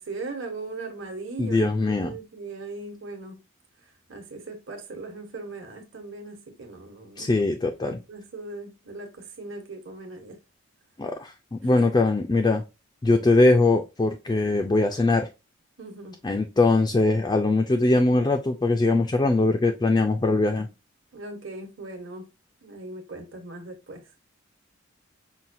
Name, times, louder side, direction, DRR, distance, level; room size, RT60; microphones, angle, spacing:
voice 1, 0.0-1.7 2.0-3.4 4.1-7.5 7.8-10.4 11.8-12.1 15.8-16.2 21.1-22.3 22.6-24.0, right 3 dB, 65° right, 1.1 m, -39 dB
voice 2, 1.4-2.2 7.2-8.0 11.0-12.6 13.0-15.3 16.2-20.7, left 2 dB, 20° left, 0.3 m, -21 dB
5.6 x 2.2 x 2.6 m
head